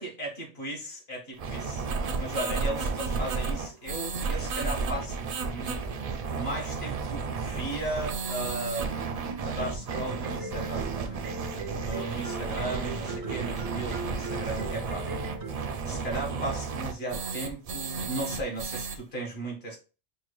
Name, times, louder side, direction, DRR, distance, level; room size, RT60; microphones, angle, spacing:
voice 1, 0.0-1.9 2.2-11.2 11.8-15.1 15.8-19.8, right 1 dB, 60° left, 1.5 m, -36 dB
sound 1, 1.4-19.0, right 5 dB, 60° right, 0.4 m, -33 dB
sound 2, 8.8-15.5, right 3 dB, 85° right, 1.1 m, -38 dB
5.5 x 2.3 x 3.0 m
omnidirectional pair, 1.2 m